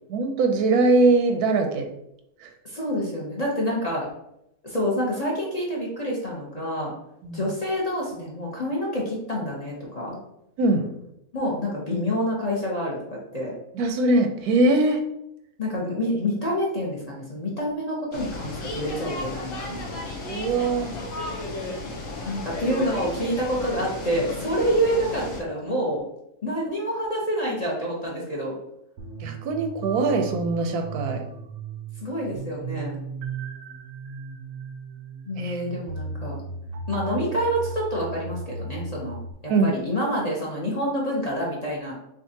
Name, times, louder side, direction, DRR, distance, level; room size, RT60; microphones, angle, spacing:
voice 1, 0.1-1.9 2.4-2.5 7.2-7.5 10.6-10.8 13.7-15.0 20.2-20.9 29.2-31.2 35.4-35.6 39.5-39.7, right 2 dB, 85° right, 5 dB, 1.1 m, -22 dB
voice 2, 2.6-4.1 4.6-6.9 7.3-10.2 11.3-13.5 15.6-19.9 22.2-26.0 26.4-28.6 32.0-33.0 35.3-36.4 36.9-39.2 39.4-42.0, equal, 35° left, -4 dB, 0.7 m, -27 dB
sound 1, 18.1-25.4, left 2 dB, 65° left, 1.2 m, -34 dB
sound 2, 29.0-39.3, right 4 dB, 65° right, 0.8 m, -36 dB
6.3 x 2.4 x 2.7 m, 0.80 s
omnidirectional pair, 1.6 m